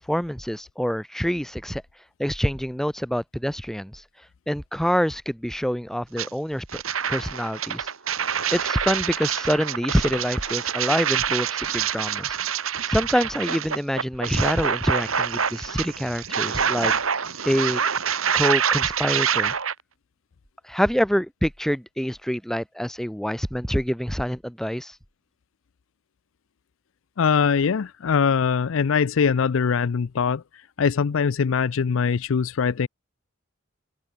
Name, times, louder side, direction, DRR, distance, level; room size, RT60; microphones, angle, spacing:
voice 1, 0.0-1.8 2.2-4.0 4.5-6.8 7.1-7.9 8.5-12.4 12.9-16.9 17.4-17.8 18.3-19.5 20.7-24.9, equal, ahead, 1.4 m, -26 dB
sound 1, 6.2-6.3 6.7-19.7, right 7 dB, 80° right, 2.4 m, -26 dB
voice 2, 27.2-30.4 30.8-32.9, left 6 dB, 70° left, 0.5 m, -22 dB
open air
head